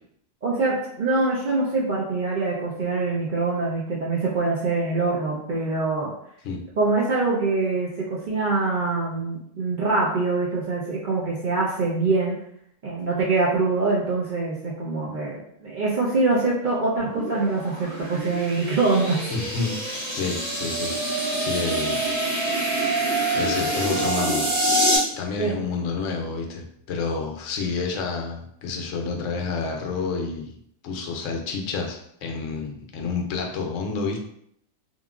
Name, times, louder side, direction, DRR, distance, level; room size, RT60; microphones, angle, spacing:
voice 1, 0.4-6.1 6.8-12.4 12.8-19.2 25.4-25.6, right 3 dB, 65° right, -5 dB, 0.5 m, -24 dB
sound 1, 17.0-25.0, right 1 dB, 35° right, 0.8 m, -26 dB
voice 2, 19.3-22.0 23.3-24.5 25.1-30.6 30.8-34.2, left 4 dB, 75° left, 2 dB, 0.9 m, -29 dB
3.0 x 2.4 x 2.3 m, 0.71 s
omnidirectional pair, 1.4 m